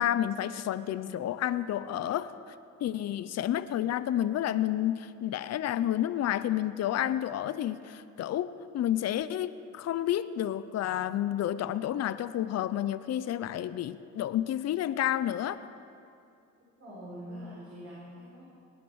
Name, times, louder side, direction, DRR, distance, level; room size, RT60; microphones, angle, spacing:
voice 1, 0.0-2.5 2.8-15.6, left 11 dB, 60° left, 14 dB, 0.6 m, -30 dB
voice 2, 16.8-18.4, equal, 50° right, -7 dB, 5.0 m, -44 dB
19.0 x 10.5 x 6.3 m, 2.5 s
cardioid pair, 90°, 30 cm